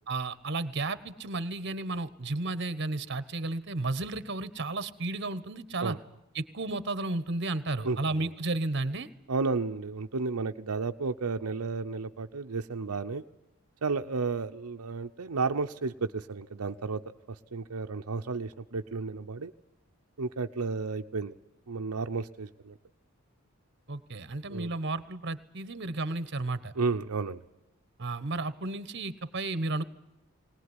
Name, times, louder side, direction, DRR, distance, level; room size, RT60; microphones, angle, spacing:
voice 1, 0.1-6.0 6.3-9.1 23.9-26.7 28.0-29.8, right 2 dB, 50° right, 15 dB, 1.2 m, -33 dB
voice 2, 7.8-8.3 9.3-13.2 13.8-17.0 17.5-19.5 20.2-21.3 21.7-22.7 24.5-24.7 26.8-27.4, right 4 dB, 85° right, 5 dB, 0.8 m, -32 dB
20.0 x 19.5 x 9.8 m, 0.89 s
head